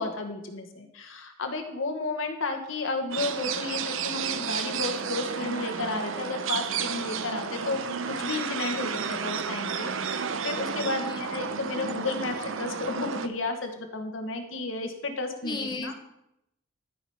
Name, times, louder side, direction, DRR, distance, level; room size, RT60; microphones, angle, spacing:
voice 1, 0.0-15.9, left 3 dB, 75° left, 5 dB, 1.4 m, -32 dB
sound 1, 3.1-13.3, right 6 dB, 75° right, 0.7 m, -32 dB
voice 2, 11.0-11.3 15.4-15.9, left 3 dB, 20° left, 3 dB, 1.0 m, -34 dB
12.5 x 5.0 x 5.6 m, 0.81 s
head